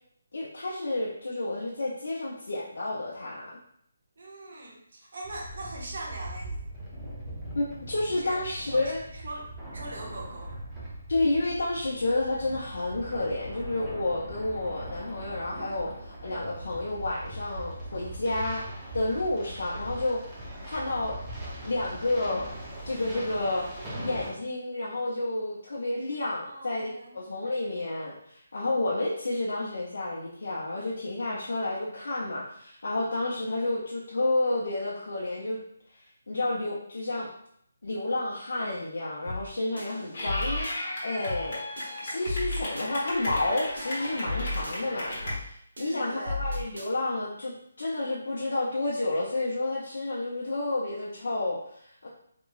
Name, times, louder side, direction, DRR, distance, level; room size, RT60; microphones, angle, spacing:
voice 1, 0.3-3.5 7.5-9.0 11.1-18.6 18.9-20.2 20.6-21.2 21.6-22.5 22.9-23.7 24.0-35.6 36.3-37.3 37.8-40.7 41.0-41.6 42.0-52.1, left 2 dB, 65° left, -6 dB, 0.7 m, -30 dB
voice 2, 4.2-6.7 8.1-8.4 8.7-10.6 20.5-20.7 26.5-27.2 45.8-46.4, right 2 dB, 50° right, -1 dB, 0.8 m, -41 dB
sound 1, 5.2-24.3, right 1 dB, 5° right, 0.5 m, -40 dB
minimal drumloop no cymbals, 39.3-39.5 39.8-40.8 41.3-41.5 41.8-42.9 43.3-43.5 43.8-44.8 45.3-45.5 45.8-46.9, left 2 dB, 90° right, 1.1 m, -35 dB
Clapping / Cheering, 40.1-45.3, left 1 dB, 35° left, 0.9 m, -35 dB
3.5 x 3.0 x 2.4 m, 0.68 s
hypercardioid pair, 175°, 0 cm